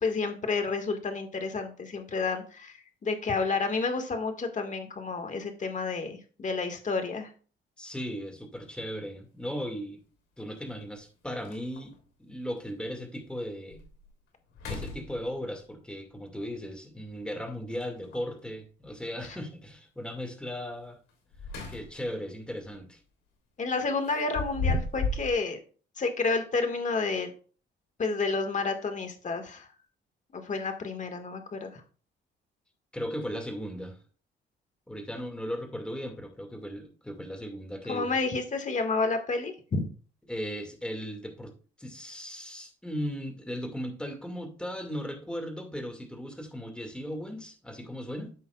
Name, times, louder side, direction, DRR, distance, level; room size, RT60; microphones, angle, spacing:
voice 1, 0.0-7.3 23.6-25.6 26.0-27.3 28.0-29.7 30.3-31.8 37.9-39.9, left 4 dB, 40° left, 6 dB, 1.7 m, -30 dB
voice 2, 7.8-10.0 10.4-13.8 14.7-21.0 21.7-23.0 32.9-34.0 34.9-38.2 40.3-41.5 41.8-48.3, equal, 5° left, 4 dB, 2.1 m, -37 dB
sound 1, 8.7-8.8 10.6-10.7 11.1-11.2 11.4-12.0 12.6-12.7 13.2-13.3 13.7-14.1 14.5-15.6 17.7-18.3 21.1-22.1 22.5-22.7 24.0-25.4, left 2 dB, 90° left, 3.1 m, -34 dB
13.5 x 5.5 x 2.4 m, 0.39 s
cardioid pair, 90°, 20 cm